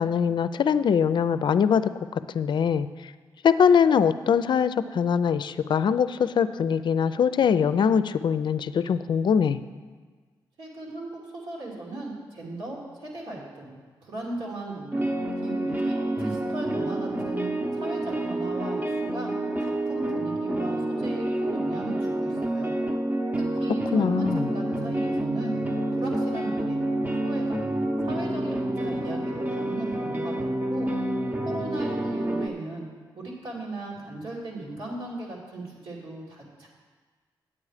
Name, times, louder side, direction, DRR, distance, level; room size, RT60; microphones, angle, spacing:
voice 1, 0.0-3.1 3.4-9.6 23.9-24.5, left 7 dB, 65° left, 13 dB, 0.4 m, -22 dB
voice 2, 10.6-15.1 15.4-17.5 17.7-19.3 19.6-22.7 23.3-26.8 27.2-27.7 28.0-30.9 31.4-32.9 33.2-36.7, right 2 dB, 80° right, -3 dB, 2.7 m, -38 dB
sound 1, 14.9-32.5, right 1 dB, 20° right, 0.9 m, -28 dB
8.6 x 8.6 x 4.9 m, 1.5 s
cardioid pair, 65°, 9 cm